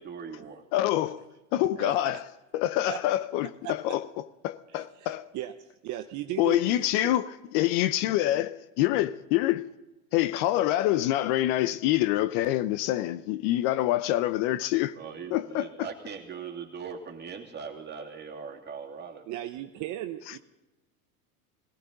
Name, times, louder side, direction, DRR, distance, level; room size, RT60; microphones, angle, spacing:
voice 1, 0.0-0.6 15.0-19.3, right 6 dB, 25° right, 2.5 m, -40 dB
voice 2, 0.7-2.2 2.5-5.3 6.4-9.7 10.1-15.0 15.3-15.7 20.3-20.4, left 14 dB, 55° left, 0.6 m, -26 dB
voice 3, 1.8-2.2 2.9-3.0 3.6-3.7 4.7-5.5 5.8-7.1 19.3-20.4, right 13 dB, 40° right, 0.8 m, -37 dB
18.5 x 17.5 x 4.0 m
hypercardioid pair, 105°, 44 cm